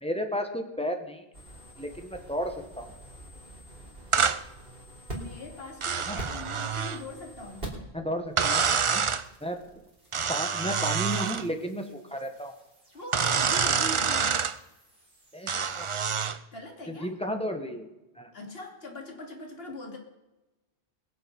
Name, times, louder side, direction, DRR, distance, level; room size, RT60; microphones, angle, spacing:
voice 1, 0.0-1.2 1.8-2.9 6.0-6.2 7.9-9.0 9.4-9.6 10.3-12.5 15.3-15.5 15.8-15.9 16.9-17.9 18.1-18.3, equal, 5° left, 5 dB, 1.5 m, -33 dB
sound 1, 1.3-8.0 8.2-16.3, right 1 dB, 60° right, 3.7 m, -47 dB
sound 2, 4.1-4.4 5.8-7.0 8.4-9.2 10.1-11.5 13.1-14.5 15.5-16.4, right 6 dB, 40° right, 0.5 m, -26 dB
voice 2, 5.1-7.8 12.9-14.4 16.5-17.1 18.3-20.0, left 2 dB, 60° left, 2 dB, 2.8 m, -41 dB
22.0 x 7.8 x 5.5 m, 1.0 s
omnidirectional pair, 1.1 m